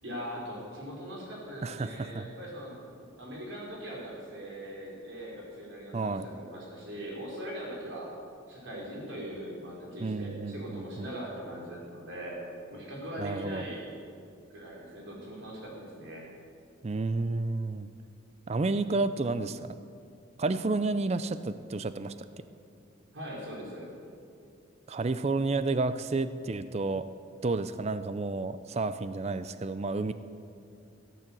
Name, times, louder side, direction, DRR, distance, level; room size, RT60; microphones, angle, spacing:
voice 1, 0.0-2.8 3.2-8.1 8.5-12.4 12.7-13.9 14.5-16.2 23.1-23.9, equal, 65° right, -4 dB, 4.7 m, -41 dB
voice 2, 1.6-2.3 5.9-6.3 10.0-11.1 13.2-13.7 16.8-17.9 18.5-19.8 20.4-22.1 24.9-27.1 27.4-30.1, right 3 dB, 30° right, 12 dB, 0.4 m, -31 dB
16.0 x 9.2 x 7.6 m, 2.4 s
head